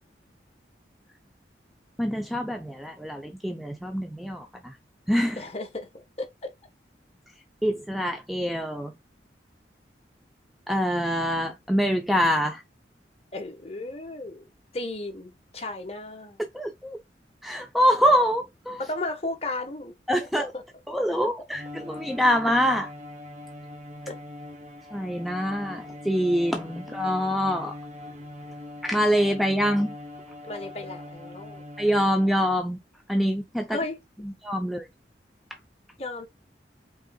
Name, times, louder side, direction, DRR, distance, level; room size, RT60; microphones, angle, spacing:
voice 1, 2.0-4.7 5.1-5.4 7.6-8.9 10.7-12.6 16.5-17.0 17.4-18.8 20.1-20.5 20.9-22.9 24.9-27.7 28.8-29.9 31.8-32.8 33.1-33.8 34.4-34.9, equal, ahead, 0.6 m, -25 dB
voice 2, 5.4-5.9 6.2-6.5 13.3-14.5 14.7-16.4 18.8-19.9 20.4-20.6 24.1-24.2 30.4-31.6 33.7-34.0 36.0-36.3, left 2 dB, 35° left, 1.3 m, -34 dB
Bowed string instrument, 21.5-32.7, left 1 dB, 40° right, 1.1 m, -42 dB
5.4 x 3.8 x 2.3 m
head